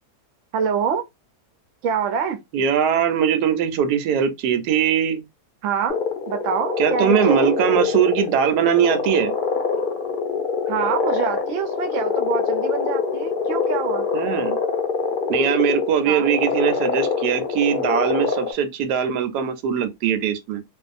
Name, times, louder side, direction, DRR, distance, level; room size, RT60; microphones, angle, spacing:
voice 1, 0.5-1.0 1.8-2.4 5.6-6.0 6.3-7.6 10.7-14.0 16.1-16.3, right 7 dB, 65° right, 0.8 m, -25 dB
voice 2, 2.5-5.2 6.8-9.3 14.1-14.6 15.3-20.6, right 8 dB, 85° right, 1.2 m, -21 dB
sound 1, 5.9-18.5, left 5 dB, 60° left, 0.5 m, -24 dB
2.6 x 2.3 x 2.4 m
omnidirectional pair, 1.7 m